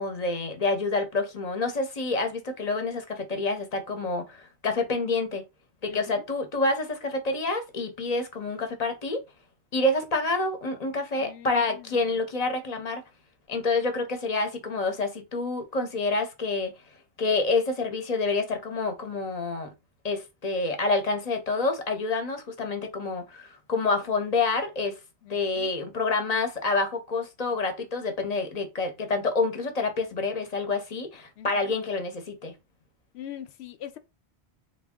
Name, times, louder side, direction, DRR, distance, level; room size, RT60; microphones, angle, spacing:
voice 1, 0.0-5.4 5.8-9.2 9.7-13.0 13.5-16.7 17.2-19.7 20.0-24.9 25.3-32.5, left 3 dB, 40° left, 0.7 m, -28 dB
voice 2, 5.9-6.3 11.2-12.1 25.2-25.7 31.4-31.7 33.1-34.0, left 11 dB, 75° left, 0.8 m, -43 dB
3.5 x 2.2 x 3.5 m
omnidirectional pair, 1.1 m